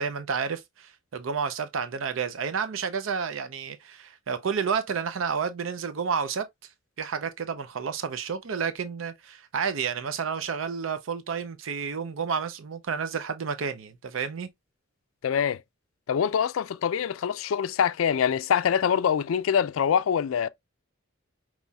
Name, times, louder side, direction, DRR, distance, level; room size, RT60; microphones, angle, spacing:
voice 1, 0.0-6.5 7.0-14.5, right 6 dB, 75° right, 0.5 m, -30 dB
voice 2, 15.2-15.6 16.1-20.5, left 7 dB, 80° left, 0.4 m, -24 dB
5.5 x 3.0 x 2.2 m
head